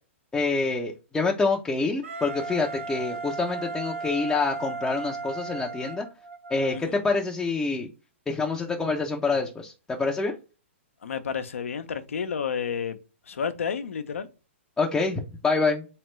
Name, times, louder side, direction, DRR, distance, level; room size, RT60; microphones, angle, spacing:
voice 1, 0.3-6.1 6.5-7.9 8.3-10.4 14.8-15.9, left 3 dB, 10° left, 0.5 m, -26 dB
Wind instrument woodwind instrument, 2.0-6.8, right 4 dB, 75° right, 1.0 m, -35 dB
voice 2, 11.0-13.0 13.3-14.3, left 6 dB, 85° left, 0.7 m, -31 dB
3.6 x 3.2 x 3.1 m
hypercardioid pair, 135°, 7 cm